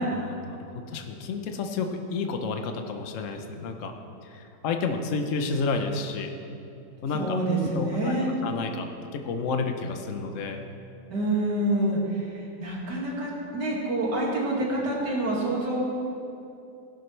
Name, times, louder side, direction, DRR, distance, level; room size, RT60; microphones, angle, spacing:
voice 1, 0.0-3.9 4.2-6.3 7.0-7.4 7.7-8.1 8.4-8.9 9.1-10.7, left 4 dB, 55° left, 5 dB, 1.1 m, -30 dB
voice 2, 7.1-8.3 11.1-15.8, right 1 dB, 85° right, -4 dB, 2.9 m, -27 dB
17.0 x 11.5 x 3.3 m, 2.7 s
omnidirectional pair, 1.8 m